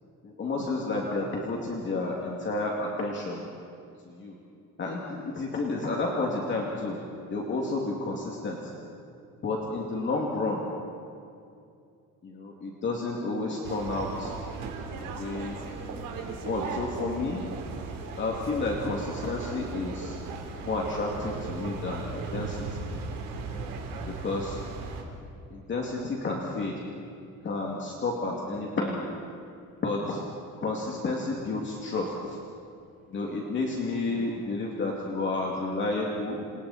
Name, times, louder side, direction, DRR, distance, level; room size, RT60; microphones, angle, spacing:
voice 1, 0.2-3.4 4.0-4.4 4.8-7.0 7.3-8.7 9.4-10.6 12.2-14.3 14.9-15.6 16.2-17.4 18.2-20.2 20.6-22.9 24.2-24.6 25.5-26.7 27.4-29.0 29.8-30.2 30.6-32.4 33.1-36.4, left 3 dB, 35° left, -2 dB, 2.6 m, -31 dB
sound 1, 13.6-25.0, right 4 dB, 80° right, 4.0 m, -37 dB
voice 2, 28.3-28.9 29.3-29.8 32.6-33.1 34.0-34.5 36.5-36.7, right 1 dB, 5° right, -6 dB, 7.8 m, -48 dB
29.0 x 28.0 x 4.4 m, 2.5 s
cardioid pair, 170°, 33 cm